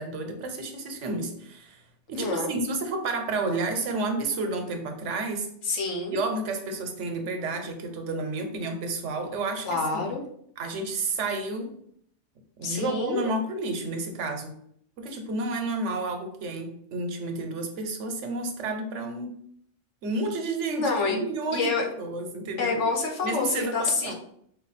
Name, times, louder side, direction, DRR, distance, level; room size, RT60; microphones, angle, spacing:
voice 1, 0.0-1.8 2.1-5.5 6.1-10.1 10.6-11.7 12.6-14.6 15.0-19.3 20.0-21.7 22.0-22.8 23.2-24.1, right 2 dB, 90° right, 6 dB, 1.1 m, -31 dB
voice 2, 2.2-2.5 5.6-6.2 9.6-10.2 12.6-13.3 20.7-21.2 21.5-21.8 22.6-24.1, left 4 dB, 80° left, 1 dB, 1.2 m, -27 dB
4.8 x 2.2 x 4.1 m, 0.68 s
omnidirectional pair, 1.2 m